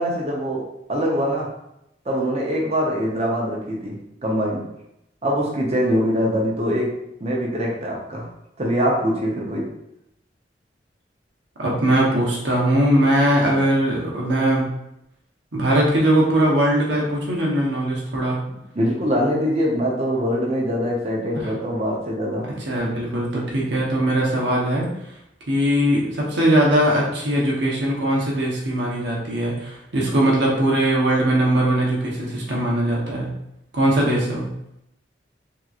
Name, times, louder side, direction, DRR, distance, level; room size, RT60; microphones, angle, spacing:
voice 1, 0.0-1.5 2.1-4.6 5.2-6.9 7.2-8.3 8.6-9.7 18.7-22.5, equal, 35° right, -2 dB, 0.7 m, -23 dB
voice 2, 11.6-14.7 15.5-18.4 21.3-21.5 22.7-24.8 25.5-33.3 33.7-34.5, right 1 dB, 80° right, -3 dB, 1.0 m, -20 dB
3.6 x 2.9 x 2.4 m, 0.82 s
head